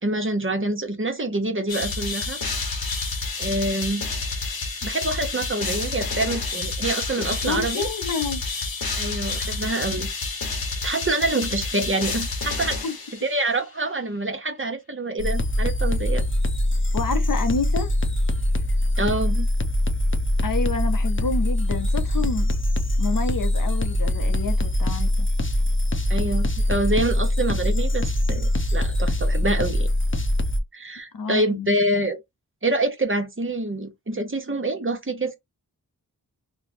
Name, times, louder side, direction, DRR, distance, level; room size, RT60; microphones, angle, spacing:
voice 1, 0.0-2.4 3.4-4.0 4.7-7.9 8.9-10.1 10.8-12.8 13.2-16.2 19.0-19.5 26.1-29.9 30.7-32.2 32.6-35.3, right 2 dB, 35° right, 1.1 m, -26 dB
sound 1, 1.7-13.6, left 3 dB, 90° left, 1.2 m, -29 dB
voice 2, 7.4-8.4 12.8-13.0 16.9-17.9 20.4-22.5 23.0-25.3 31.1-31.8, left 4 dB, 65° left, 0.8 m, -28 dB
sound 2, 15.2-30.6, left 1 dB, 35° left, 0.8 m, -23 dB
3.2 x 2.3 x 4.2 m
wide cardioid pair, 65°, 36 cm